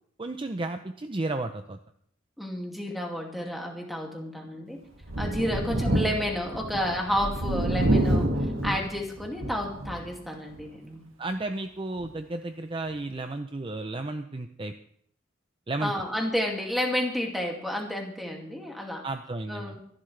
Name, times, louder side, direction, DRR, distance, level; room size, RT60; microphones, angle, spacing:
voice 1, 0.2-1.8 5.5-5.6 11.2-14.7 15.7-15.9 19.0-19.8, right 2 dB, 25° right, 7 dB, 0.6 m, -33 dB
voice 2, 2.4-4.8 5.2-8.3 8.6-11.0 15.8-19.1 19.5-19.8, equal, ahead, 0 dB, 2.3 m, -31 dB
Thunder, 5.0-10.1 10.6-10.7 12.0-12.1, right 1 dB, 85° right, 2.1 m, -28 dB
25.0 x 11.5 x 3.3 m, 0.70 s
head